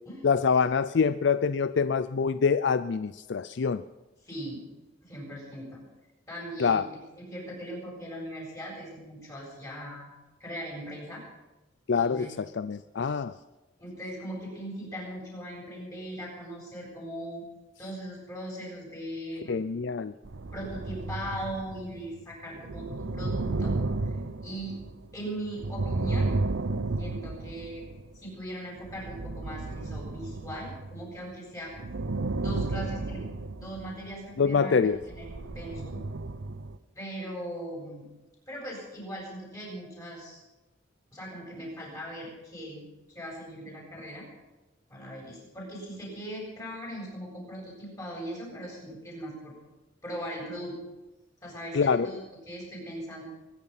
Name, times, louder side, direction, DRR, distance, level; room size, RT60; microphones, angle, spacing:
voice 1, 0.2-3.8 6.6-6.8 11.9-13.3 19.5-20.1 34.4-35.0 51.7-52.2, left 5 dB, 60° left, 13 dB, 0.4 m, -25 dB
voice 2, 4.2-4.6 5.0-5.8 6.3-10.1 10.4-11.2 12.0-12.3 13.8-17.4 17.8-19.6 20.5-23.7 24.1-24.2 24.4-24.8 25.1-26.3 27.0-27.9 28.1-31.7 32.3-33.2 33.6-36.0 36.9-38.1 38.5-40.4 41.1-44.3 44.9-49.5 50.0-50.7 51.4-53.2, equal, 15° left, -3 dB, 7.9 m, -39 dB
sound 1, 20.3-28.2 28.8-31.2 31.7-34.3 34.9-36.8, right 3 dB, 75° right, 0.8 m, -33 dB
22.5 x 11.0 x 5.9 m, 1.1 s
head